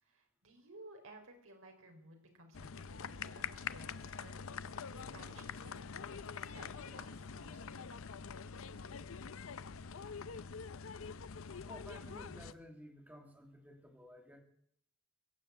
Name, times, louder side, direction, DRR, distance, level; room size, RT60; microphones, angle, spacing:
voice 1, 0.0-4.4 4.9-5.8 6.1-8.1, right 2 dB, 85° right, 3 dB, 3.9 m, -57 dB
sound 1, 2.5-12.5, left 6 dB, 80° left, 0.6 m, -45 dB
sound 2, 3.9-8.9, left 1 dB, 50° left, 5.6 m, -68 dB
voice 2, 11.7-14.4, equal, 10° right, 3 dB, 2.4 m, -54 dB
22.0 x 7.5 x 8.0 m, 0.68 s
head